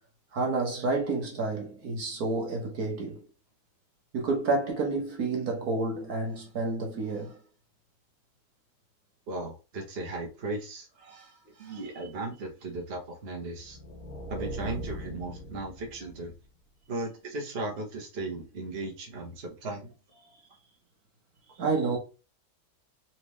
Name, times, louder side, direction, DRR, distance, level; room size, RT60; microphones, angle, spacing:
voice 1, 0.3-3.2 4.1-7.4 11.1-11.3 11.7-11.8 21.6-22.0, right 3 dB, 55° right, 1.4 m, -29 dB
voice 2, 9.3-10.9 11.6-13.8 14.3-16.3 16.9-19.9, right 2 dB, 40° right, 1.1 m, -36 dB
sound 1, 13.5-16.5, equal, 50° left, 1.7 m, -40 dB
4.1 x 3.4 x 3.1 m
omnidirectional pair, 2.1 m